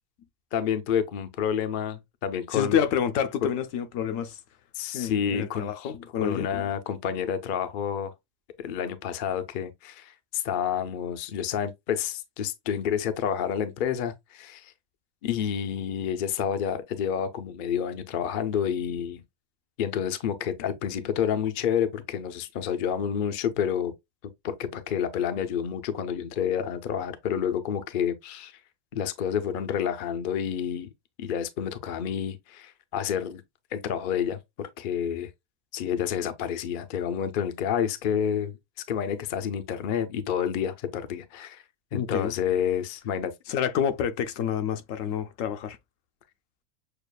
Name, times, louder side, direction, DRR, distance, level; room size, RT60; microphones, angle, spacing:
voice 1, 0.5-2.8 3.4-3.5 4.7-5.9 6.2-8.1 8.6-14.7 15.2-19.2 19.8-23.9 24.4-28.5 28.9-30.9 31.2-33.4 33.7-35.3 35.7-38.6 38.9-41.6 41.9-43.3, left 8 dB, 55° left, 0.5 m, -29 dB
voice 2, 2.5-4.4 4.9-6.7 41.9-42.3 43.5-45.8, left 8 dB, 75° left, 0.9 m, -28 dB
6.7 x 2.4 x 2.2 m
omnidirectional pair, 1.4 m